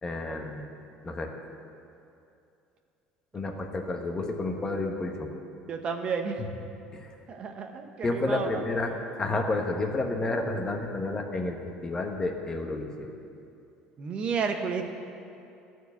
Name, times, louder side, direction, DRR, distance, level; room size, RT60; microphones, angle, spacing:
voice 1, 0.0-0.6 1.0-1.3 3.3-5.3 6.9-7.1 8.0-8.9 9.2-11.6 11.8-13.1, left 2 dB, 25° left, 3 dB, 1.2 m, -30 dB
voice 2, 5.7-6.4 7.3-8.5 14.0-14.9, right 5 dB, 45° right, 5 dB, 0.8 m, -31 dB
12.5 x 4.6 x 8.2 m, 2.6 s
supercardioid pair, 100°, 3 cm